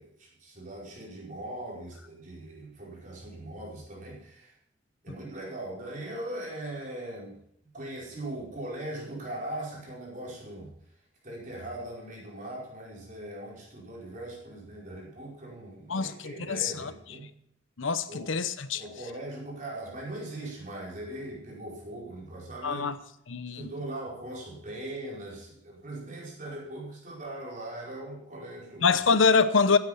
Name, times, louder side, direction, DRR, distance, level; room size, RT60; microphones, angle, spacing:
voice 1, 0.0-4.5 5.0-7.4 7.7-10.7 11.2-17.3 18.1-18.3 18.7-22.9 23.5-29.0, right 1 dB, 40° right, 4.8 m, -40 dB
voice 2, 15.9-16.9 17.8-18.8 22.6-23.0 23.3-23.7 28.8-29.8, left 5 dB, 80° left, 0.9 m, -25 dB
16.0 x 9.0 x 5.7 m
head